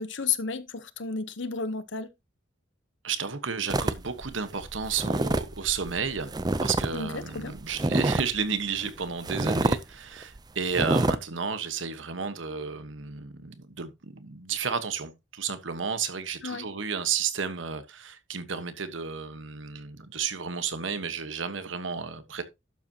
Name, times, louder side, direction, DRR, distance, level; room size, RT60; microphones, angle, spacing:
voice 1, 0.0-2.1 6.9-7.5 16.4-16.6, left 5 dB, 70° left, 1.0 m, -32 dB
voice 2, 3.0-22.4, right 6 dB, 80° right, 1.2 m, -32 dB
sound 1, 3.7-6.9 7.2-8.4 8.8-8.9 9.2-9.8 10.2-10.4 10.7-11.2, right 2 dB, 20° right, 0.5 m, -27 dB
12.0 x 7.5 x 2.9 m
head